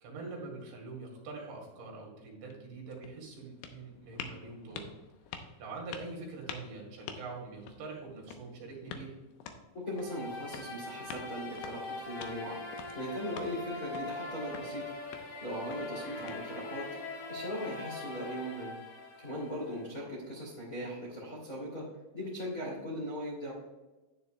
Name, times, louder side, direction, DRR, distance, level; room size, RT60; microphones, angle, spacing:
voice 1, 0.0-4.9 5.3-9.2 16.2-16.3 20.0-20.1, right 3 dB, 70° right, -1 dB, 4.3 m, -44 dB
sound 1, 2.3-16.9, left 6 dB, 80° left, 2.2 m, -49 dB
voice 2, 9.8-18.7 19.2-21.8 22.1-23.5, equal, 35° left, -5 dB, 1.5 m, -39 dB
sound 2, 9.9-19.9, left 2 dB, 55° left, 3.4 m, -42 dB
11.0 x 9.6 x 2.2 m, 1.1 s
omnidirectional pair, 5.4 m